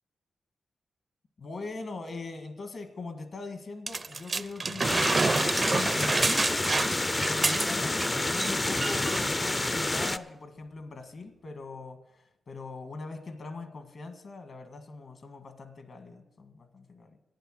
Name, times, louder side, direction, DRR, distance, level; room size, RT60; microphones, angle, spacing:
voice 1, 1.4-5.2 5.6-6.7 7.3-17.2, left 3 dB, 60° left, 7 dB, 1.6 m, -41 dB
sound 1, 3.9-8.1 8.3-8.5 8.8-9.2 10.0-10.1, right 3 dB, 40° right, 0.4 m, -28 dB
sound 2, 4.8-10.2, left 2 dB, 20° left, 0.4 m, -28 dB
11.5 x 9.5 x 6.4 m, 0.92 s
cardioid pair, 90°, 0 cm